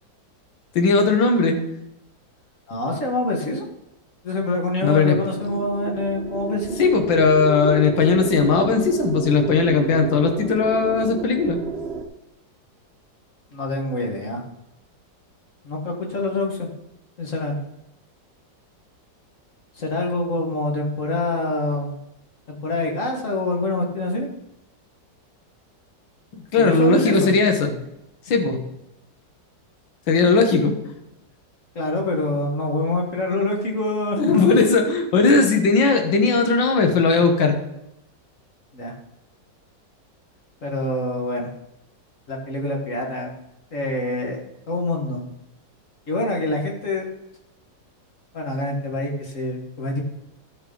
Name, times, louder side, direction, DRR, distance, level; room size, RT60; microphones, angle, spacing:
voice 1, 0.8-1.6 4.8-5.2 6.8-11.6 26.3-27.7 28.3-28.6 30.1-30.7 34.2-37.6, left 4 dB, 90° left, 6 dB, 2.0 m, -18 dB
voice 2, 2.7-3.6 4.2-6.9 13.5-14.4 15.6-16.7 17.2-17.6 19.8-22.0 22.5-24.3 26.6-27.3 31.8-34.5 38.7-38.9 40.6-41.5 42.3-43.3 43.7-44.4 44.7-45.2 46.1-47.1 48.3-50.0, left 2 dB, 45° left, 0 dB, 1.9 m, -25 dB
sound 1, 5.0-12.1, right 5 dB, 40° right, 1.0 m, -31 dB
12.5 x 6.4 x 3.9 m, 0.86 s
omnidirectional pair, 2.0 m